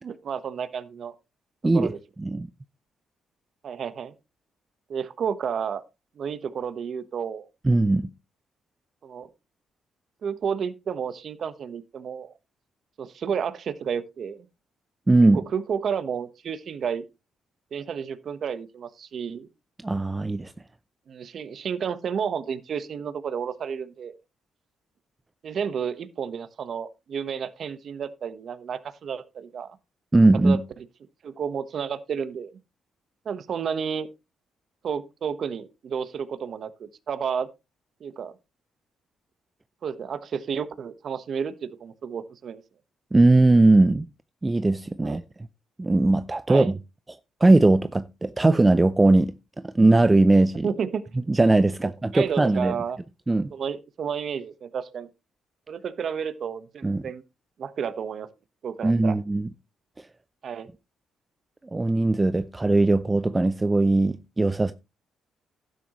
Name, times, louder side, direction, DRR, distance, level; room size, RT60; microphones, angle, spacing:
voice 1, 0.0-1.1 1.7-2.0 3.6-4.1 4.9-5.8 6.2-7.5 9.0-9.3 10.2-12.3 13.0-14.5 15.3-17.1 17.7-19.5 21.1-24.2 25.4-29.8 30.4-30.8 31.2-32.5 33.2-34.1 34.8-37.5 38.0-38.3 39.8-42.6 45.0-45.2 46.5-46.7 50.6-51.0 51.8-53.0 53.5-55.1 55.7-57.2 57.6-58.3 58.6-59.2 60.4-60.7, right 7 dB, 55° right, 1.2 m, -31 dB
voice 2, 7.6-8.1 15.1-15.4 19.8-20.5 30.1-30.6 43.1-44.1 44.4-45.2 45.8-46.8 47.4-49.3 49.6-50.7 51.3-52.8 53.3-53.5 56.8-57.0 58.8-59.5 61.7-64.7, right 2 dB, 20° right, 0.6 m, -19 dB
12.0 x 9.4 x 3.1 m
cardioid pair, 90°, 0 cm